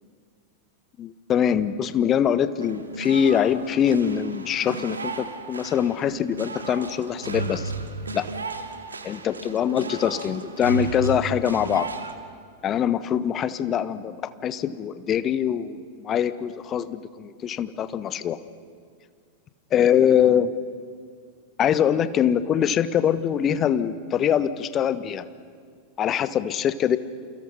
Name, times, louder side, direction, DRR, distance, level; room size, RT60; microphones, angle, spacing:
voice 1, 1.0-7.7 8.1-8.3 9.0-11.9 12.6-18.4 19.7-20.5 21.6-25.2 26.0-27.0, left 9 dB, 30° left, 13 dB, 1.3 m, -23 dB
sound 1, 2.6-12.1, right 4 dB, 75° right, 2.1 m, -34 dB
28.5 x 28.5 x 5.7 m, 2.1 s
figure-of-eight pair, 90°, 0 cm